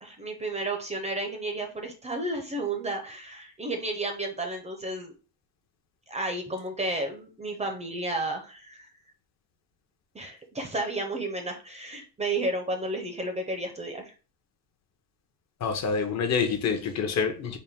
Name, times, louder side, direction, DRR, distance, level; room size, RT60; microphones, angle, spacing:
voice 1, 0.0-5.1 6.1-8.9 10.1-14.1, right 2 dB, 20° right, 0.5 m, -32 dB
voice 2, 15.6-17.6, left 5 dB, 45° left, 0.7 m, -27 dB
4.1 x 2.5 x 3.4 m
cardioid pair, 150°, 37 cm